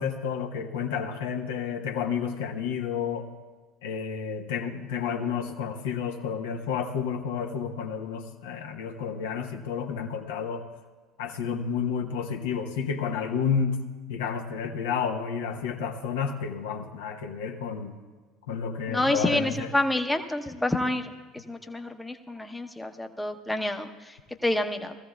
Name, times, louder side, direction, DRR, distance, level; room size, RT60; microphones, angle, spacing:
voice 1, 0.0-3.3 3.8-10.6 11.2-13.8 14.1-18.0 18.5-19.7, left 6 dB, 75° left, 4 dB, 0.8 m, -30 dB
voice 2, 18.9-25.0, left 1 dB, 10° left, 5 dB, 0.8 m, -28 dB
19.5 x 14.5 x 2.3 m, 1.3 s
hypercardioid pair, 65°, 0 cm